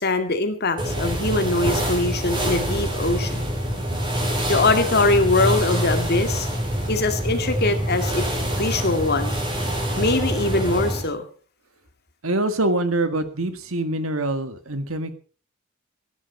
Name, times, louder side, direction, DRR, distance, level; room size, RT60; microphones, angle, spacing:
voice 1, 0.0-3.4 4.5-6.5 6.9-8.3 8.6-9.4 10.0-11.2, left 2 dB, 50° left, 7 dB, 2.2 m, -22 dB
sound 1, 0.8-11.1, equal, 25° right, 5.6 m, -25 dB
voice 2, 12.2-15.1, right 2 dB, 85° right, 10 dB, 1.8 m, -24 dB
15.5 x 11.5 x 5.5 m, 0.40 s
head